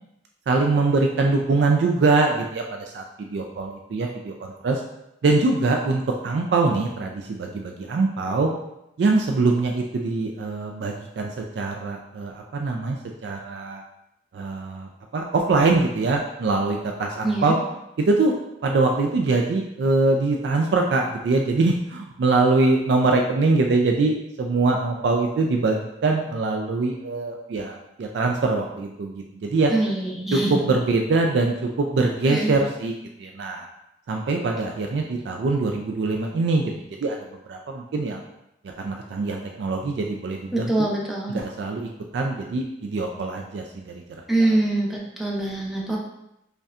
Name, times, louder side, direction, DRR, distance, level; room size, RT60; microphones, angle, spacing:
voice 1, 0.5-4.8 5.2-8.5 9.0-13.0 13.2-13.8 14.3-17.6 18.0-29.7 30.3-32.9 33.2-33.7 34.1-36.7 37.0-37.2 37.5-38.2 38.8-40.9 41.3-44.0 44.4-44.6, right 3 dB, 80° right, 2 dB, 0.3 m, -23 dB
voice 2, 17.2-17.5 29.7-30.6 32.2-32.6 40.5-41.4 44.3-46.0, right 2 dB, ahead, -3 dB, 0.5 m, -24 dB
5.2 x 2.2 x 2.4 m, 0.85 s
head